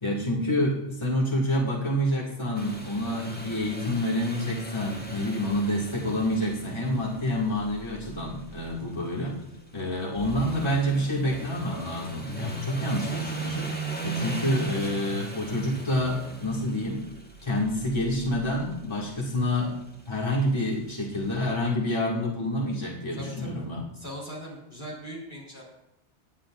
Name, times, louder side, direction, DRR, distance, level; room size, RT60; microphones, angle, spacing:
voice 1, 0.0-9.4 9.7-13.7 14.0-17.0 17.4-19.8 20.1-23.8, left 1 dB, 25° left, -4 dB, 2.3 m, -28 dB
sound 1, 2.6-21.4, right 2 dB, 10° left, 1.6 m, -38 dB
voice 2, 23.2-23.7 23.9-25.6, equal, 50° left, -4 dB, 4.0 m, -40 dB
25.5 x 10.5 x 2.5 m, 0.87 s
omnidirectional pair, 1.2 m